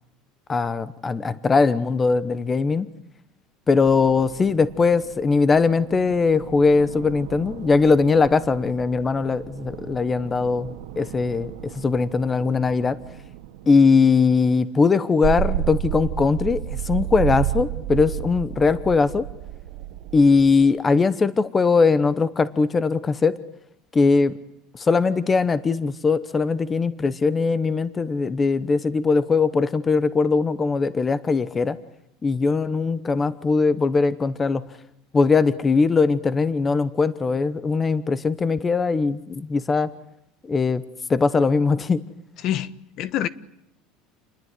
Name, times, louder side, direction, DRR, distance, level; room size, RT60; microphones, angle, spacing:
voice 1, 0.5-2.9 3.7-10.7 11.0-13.0 13.7-19.2 20.1-23.3 23.9-24.3 24.8-31.8 32.2-34.6 35.1-39.9 40.5-40.8 41.1-42.0, left 4 dB, 15° left, 1.0 m, -20 dB
sound 1, 3.8-13.8, right 11 dB, 85° right, 2.3 m, -41 dB
sound 2, 15.2-20.6, right 14 dB, 65° right, 1.2 m, -28 dB
voice 2, 42.4-43.3, left 11 dB, 45° left, 1.2 m, -26 dB
29.0 x 21.0 x 9.6 m
cardioid pair, 160°, 0 cm